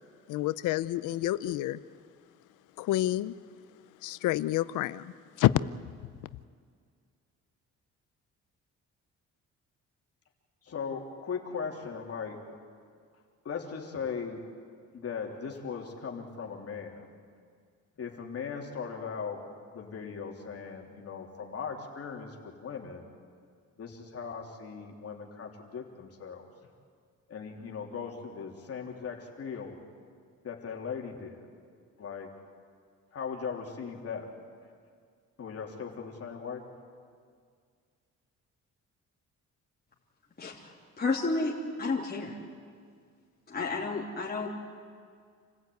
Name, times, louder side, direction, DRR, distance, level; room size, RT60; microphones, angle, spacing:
voice 1, 0.3-1.8 2.8-3.3 4.0-5.1 5.4-5.6, left 15 dB, 90° left, 16 dB, 0.7 m, -28 dB
voice 2, 10.6-12.4 13.4-14.4 14.9-17.1 18.0-19.4 19.7-23.1 23.8-26.4 27.3-29.8 30.4-31.5 32.0-32.3 33.1-34.3 35.4-36.6, left 6 dB, 50° left, 1 dB, 3.3 m, -38 dB
voice 3, 40.4-42.4 43.5-44.5, left 3 dB, 30° left, -4 dB, 3.2 m, -31 dB
28.0 x 15.5 x 9.4 m, 2.1 s
cardioid pair, 90°, 30 cm